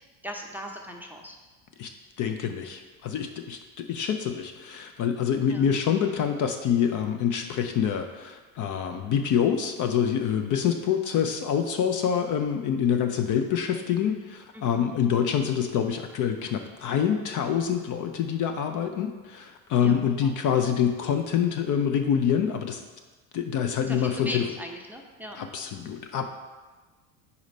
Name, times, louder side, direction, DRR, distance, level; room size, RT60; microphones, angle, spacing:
voice 1, 0.0-1.4 5.5-5.7 14.5-14.9 19.8-20.3 23.9-25.4, equal, 5° right, 1 dB, 0.6 m, -39 dB
voice 2, 2.2-22.8 23.3-24.4 25.4-26.3, left 8 dB, 45° left, 6 dB, 0.5 m, -26 dB
4.9 x 4.0 x 5.3 m, 1.3 s
hypercardioid pair, 80°, 46 cm